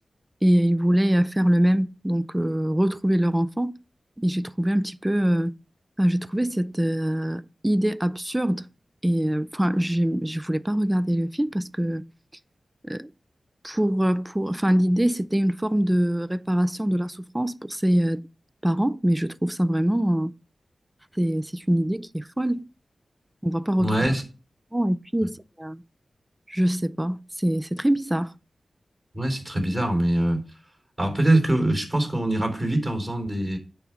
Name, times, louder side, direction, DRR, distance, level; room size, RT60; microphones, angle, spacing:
voice 1, 0.4-3.7 4.2-5.5 6.0-8.7 9.0-12.0 12.8-13.1 13.6-18.2 18.6-20.3 21.2-22.6 23.4-24.0 24.7-25.8 26.5-28.3, equal, 15° right, 0.4 m, -23 dB
voice 2, 23.8-24.2 29.1-30.5 31.0-33.6, right 1 dB, 30° right, 3.6 m, -23 dB
9.1 x 3.6 x 5.8 m
cardioid pair, 55°, 0 cm